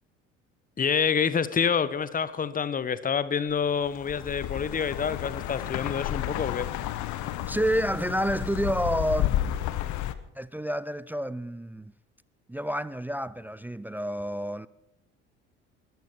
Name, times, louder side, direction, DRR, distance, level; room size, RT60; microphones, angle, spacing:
voice 1, 0.8-6.7, left 6 dB, 25° left, 1.2 m, -27 dB
sound 1, 3.8-10.1, left 13 dB, 55° left, 1.3 m, -31 dB
voice 2, 7.5-9.3 10.4-11.9 12.5-14.7, equal, 5° right, 0.5 m, -29 dB
22.5 x 14.0 x 4.6 m
figure-of-eight pair, 60°, 34 cm